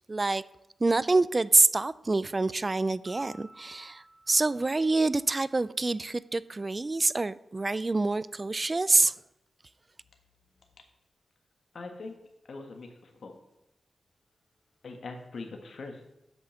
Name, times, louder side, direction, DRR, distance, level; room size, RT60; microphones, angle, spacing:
voice 1, 0.1-0.4 0.8-9.1, right 3 dB, 30° right, 17 dB, 0.4 m, -26 dB
Piano, 3.0-5.6, right 2 dB, 45° right, 3.4 m, -55 dB
voice 2, 11.7-12.2 12.5-13.3 14.8-16.0, left 3 dB, 65° left, 3 dB, 1.6 m, -42 dB
8.1 x 5.5 x 7.7 m, 0.87 s
wide cardioid pair, 85°, 0 cm